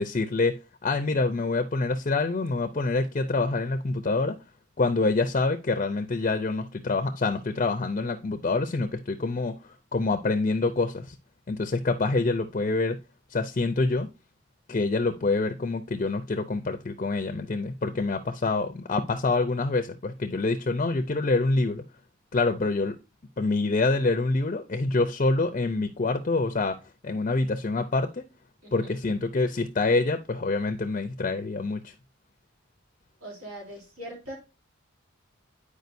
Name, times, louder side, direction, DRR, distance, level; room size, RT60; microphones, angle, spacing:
voice 1, 0.0-4.3 4.8-11.1 11.5-13.0 13.3-14.1 14.7-21.8 22.3-23.0 23.4-26.8 27.0-28.2 28.7-31.9, left 3 dB, 35° left, 0.5 m, -26 dB
voice 2, 33.2-34.4, right 1 dB, 85° right, 3.2 m, -41 dB
9.3 x 4.9 x 2.6 m
head